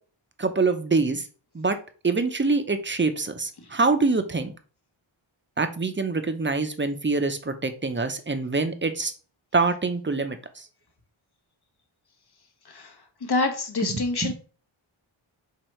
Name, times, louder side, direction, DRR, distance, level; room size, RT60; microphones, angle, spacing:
voice 1, 0.4-1.2 1.5-1.8 2.0-4.5 5.6-9.1 9.5-10.6 13.9-14.3, right 3 dB, 25° right, 8 dB, 0.6 m, -25 dB
voice 2, 12.6-13.0 13.2-14.3, left 3 dB, 50° left, 6 dB, 0.9 m, -26 dB
4.7 x 3.3 x 3.1 m, 0.38 s
wide cardioid pair, 40°, 50 cm